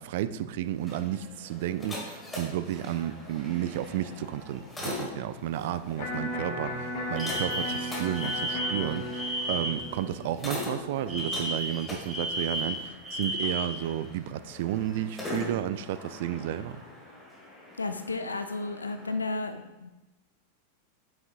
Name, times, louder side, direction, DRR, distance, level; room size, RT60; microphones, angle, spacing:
voice 1, 0.0-16.8, right 11 dB, 50° right, 12 dB, 0.3 m, -32 dB
sound 1, 0.6-19.1, left 2 dB, 10° left, 1.9 m, -42 dB
Electric guitar, 6.0-12.0, left 1 dB, 45° left, 0.9 m, -36 dB
Alarm, 7.2-9.9 11.1-13.8, equal, 15° right, 2.0 m, -33 dB
voice 2, 17.8-19.9, left 3 dB, 80° left, 8 dB, 0.4 m, -33 dB
9.2 x 6.0 x 2.6 m, 1.0 s
figure-of-eight pair, 90°, 0 cm